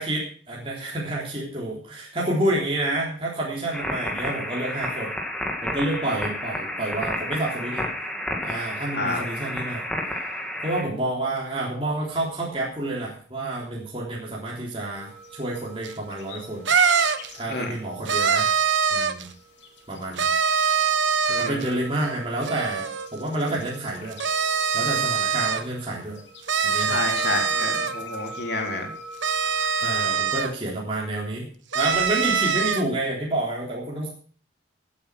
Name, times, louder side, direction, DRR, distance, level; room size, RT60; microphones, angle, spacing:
voice 1, 0.0-5.1 5.6-7.8 8.4-9.8 10.6-16.6 17.3-18.5 18.9-19.3 19.9-20.3 21.4-24.2 24.7-26.2 26.6-27.0 29.8-31.5 31.7-34.1, right 1 dB, 30° right, -4 dB, 3.5 m, -29 dB
sound 1, 3.7-10.8, left 1 dB, 5° left, 2.4 m, -31 dB
sound 2, 14.9-30.3, equal, 70° left, 3.2 m, -43 dB
sound 3, 15.8-15.9 16.6-17.3 18.0-19.3 20.2-21.7 22.4-23.1 24.1-25.6 26.5-27.9 29.2-30.5 31.7-32.8, right 6 dB, 80° right, 1.2 m, -23 dB
voice 2, 21.3-21.9 26.8-28.9, left 2 dB, 55° left, 2 dB, 3.9 m, -29 dB
16.5 x 8.5 x 6.2 m, 0.44 s
head